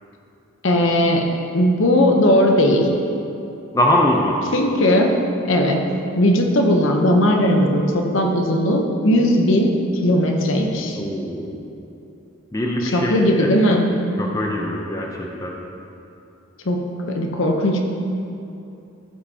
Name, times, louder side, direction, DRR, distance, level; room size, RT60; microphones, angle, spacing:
voice 1, 0.6-1.3 1.5-2.9 4.5-5.1 5.4-5.8 6.1-11.0 12.8-14.0 16.6-17.8, left 1 dB, 70° left, 2 dB, 0.8 m, -18 dB
voice 2, 3.7-4.4 11.0-11.6 12.5-13.5 14.2-15.5, left 1 dB, 15° left, 0 dB, 0.5 m, -22 dB
13.5 x 5.7 x 2.8 m, 2.8 s
head